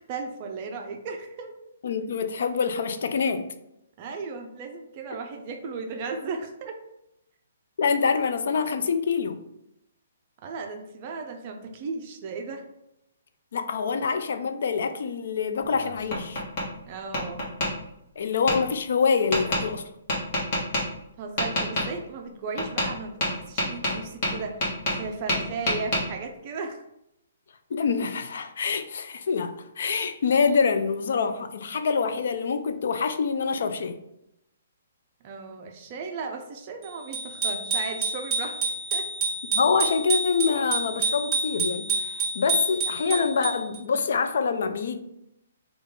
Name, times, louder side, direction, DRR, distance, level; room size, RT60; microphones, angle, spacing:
voice 1, 0.0-1.5 4.0-6.7 10.4-12.7 16.9-17.4 21.2-26.8 35.2-39.1, right 4 dB, 30° right, 0.5 m, -36 dB
voice 2, 1.8-3.5 7.8-9.4 13.5-16.4 18.2-19.8 27.7-34.0 39.5-45.0, left 5 dB, 60° left, 0.4 m, -25 dB
Tap, 15.6-16.7 17.1-17.7 18.5-18.6 19.3-19.6 20.1-20.8 21.4-21.9 22.6-22.9 23.2-25.0 25.3-26.0, left 1 dB, 35° left, 1.2 m, -26 dB
Bicycle bell, 37.1-43.8, right 3 dB, 15° right, 1.0 m, -28 dB
3.6 x 2.4 x 3.7 m
hypercardioid pair, 170°, 0 cm